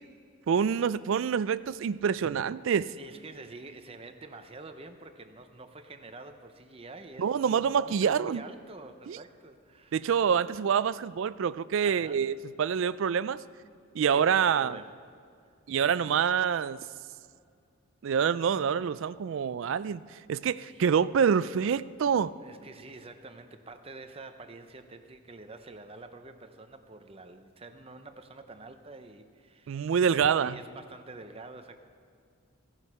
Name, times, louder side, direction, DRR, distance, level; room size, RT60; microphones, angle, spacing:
voice 1, 0.5-2.9 7.2-8.4 9.1-9.2 9.9-13.4 13.9-14.8 15.7-16.8 18.0-22.3 29.7-30.6, right 7 dB, 60° right, 16 dB, 0.3 m, -26 dB
voice 2, 3.0-10.1 11.8-12.2 14.0-14.9 15.4-15.5 20.5-21.1 22.4-31.8, right 2 dB, 25° right, 8 dB, 0.6 m, -47 dB
15.0 x 11.0 x 5.5 m, 2.2 s
head